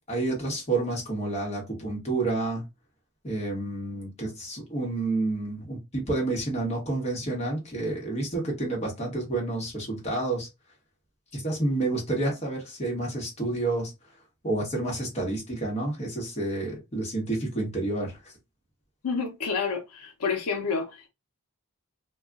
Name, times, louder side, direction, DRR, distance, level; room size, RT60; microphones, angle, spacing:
voice 1, 0.1-2.6 3.2-10.5 11.3-13.9 14.4-18.3, right 2 dB, 30° left, 1.1 m, -29 dB
voice 2, 19.0-21.1, left 5 dB, 85° left, 0.7 m, -29 dB
2.3 x 2.3 x 3.7 m
head